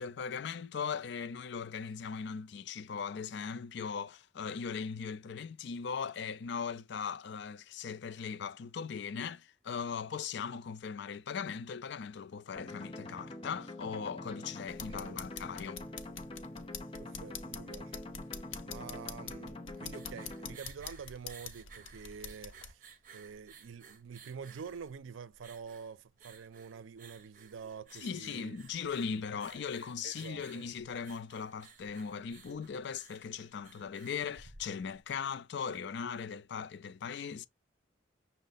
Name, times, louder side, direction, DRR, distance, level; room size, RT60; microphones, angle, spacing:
voice 1, 0.0-15.8 28.0-37.5, left 6 dB, 65° left, 0.4 m, -39 dB
sound 1, 12.6-20.6, left 2 dB, 30° left, 0.7 m, -45 dB
sound 2, 14.7-22.7, left 6 dB, 85° left, 0.8 m, -46 dB
voice 2, 17.0-18.0 18.7-28.6 29.5-29.6 30.0-30.6, right 6 dB, 90° right, 0.4 m, -47 dB
sound 3, 19.8-35.1, right 5 dB, 45° right, 0.8 m, -57 dB
6.3 x 2.1 x 3.9 m
head